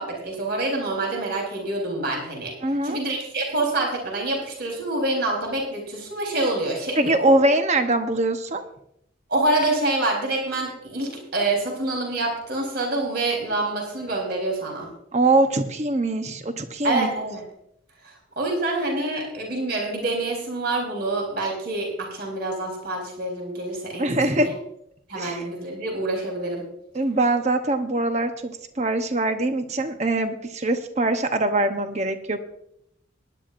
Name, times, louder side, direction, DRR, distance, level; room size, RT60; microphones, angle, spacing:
voice 1, 0.0-2.5 2.8-7.4 9.3-14.9 16.8-17.4 18.0-24.5 25.1-26.7, right 2 dB, 50° right, 0 dB, 3.8 m, -26 dB
voice 2, 2.6-3.0 7.0-8.6 15.1-17.1 24.0-24.6 25.2-25.4 26.9-32.4, right 2 dB, 35° right, 7 dB, 0.9 m, -23 dB
19.5 x 10.5 x 2.6 m, 0.74 s
head